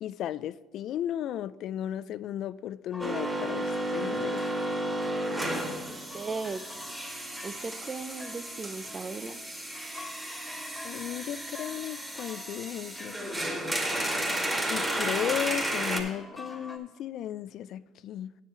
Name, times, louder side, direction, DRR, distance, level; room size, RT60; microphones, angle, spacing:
voice 1, 0.0-4.5 10.8-13.2 14.7-18.4, left 11 dB, 60° left, 0.3 m, -35 dB
sound 1, 2.9-16.8, left 2 dB, 15° left, 1.7 m, -47 dB
sound 2, 3.0-16.0, right 1 dB, 10° right, 2.1 m, -33 dB
voice 2, 5.9-6.6 7.4-9.4, right 4 dB, 30° right, 0.6 m, -37 dB
9.2 x 7.3 x 4.4 m
supercardioid pair, 90°, 0 cm